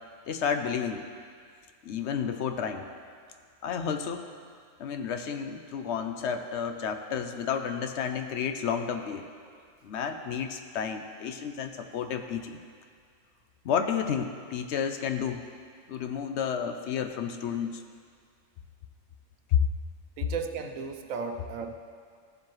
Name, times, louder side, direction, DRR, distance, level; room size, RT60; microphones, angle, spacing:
voice 1, 0.3-1.1 1.8-2.9 3.6-4.3 4.8-9.2 9.8-12.5 13.6-15.4 15.9-17.8 19.5-19.6, left 7 dB, 65° left, 7 dB, 0.8 m, -31 dB
voice 2, 20.2-21.7, right 5 dB, 90° right, 6 dB, 1.1 m, -35 dB
14.5 x 7.3 x 3.1 m, 2.1 s
omnidirectional pair, 1.4 m